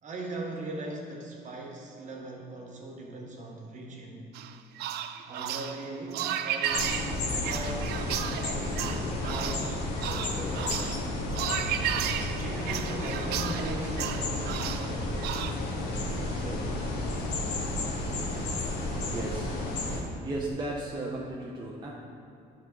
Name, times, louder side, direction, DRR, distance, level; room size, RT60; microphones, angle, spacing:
voice 1, 0.0-4.3 5.3-7.0 7.4-10.9 12.4-15.7 16.1-16.8, right 2 dB, 45° right, 0 dB, 1.4 m, -40 dB
sound 1, 4.3-15.5, right 10 dB, 75° right, 0.4 m, -34 dB
sound 2, 6.7-20.0, left 2 dB, 80° left, 1.3 m, -32 dB
voice 2, 19.0-19.7 20.2-21.9, right 2 dB, 25° right, -3 dB, 0.8 m, -35 dB
10.0 x 4.1 x 4.6 m, 2.6 s
cardioid pair, 110°, 17 cm